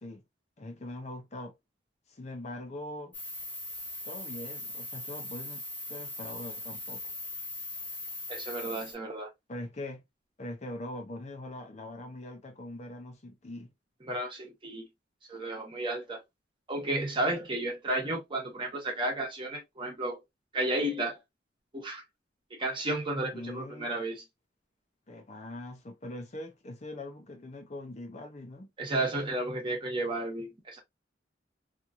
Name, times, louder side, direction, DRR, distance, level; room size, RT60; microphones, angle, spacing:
voice 1, 0.6-1.5 2.1-3.1 4.0-5.6 5.9-7.1 9.5-10.0 10.4-13.7 23.3-23.9 25.1-28.7, left 1 dB, 40° left, 0.6 m, -42 dB
sound 1, 3.1-8.9, left 1 dB, 10° left, 0.9 m, -40 dB
voice 2, 8.3-9.3 14.0-14.9 15.3-16.2 16.7-20.2 20.5-21.2 21.7-22.0 22.6-24.2 28.8-30.8, right 1 dB, 30° right, 1.1 m, -32 dB
2.9 x 2.5 x 2.4 m
head